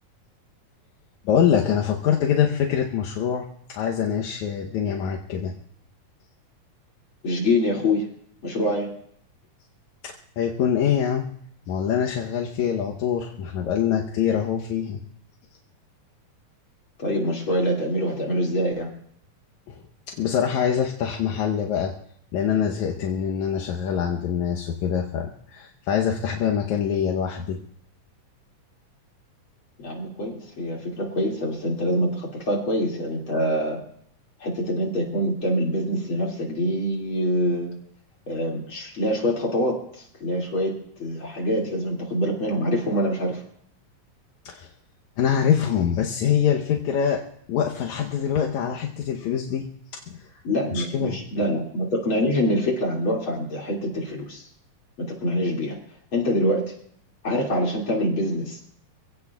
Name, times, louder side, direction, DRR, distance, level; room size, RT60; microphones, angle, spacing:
voice 1, 1.3-5.5 10.0-11.3 11.7-15.0 19.7-19.8 20.1-22.0 22.3-27.6 44.5-44.7 45.2-47.2 47.5-50.3 50.7-51.2, left 8 dB, 70° left, 0 dB, 2.0 m, -24 dB
voice 2, 7.2-8.1 8.4-8.9 17.0-18.9 29.8-33.8 34.4-37.7 38.3-40.7 41.0-43.4 50.4-54.5 55.0-55.8 56.1-56.6 57.2-58.6, equal, 40° left, -1 dB, 2.9 m, -25 dB
26.0 x 17.0 x 2.4 m, 0.66 s
omnidirectional pair, 4.1 m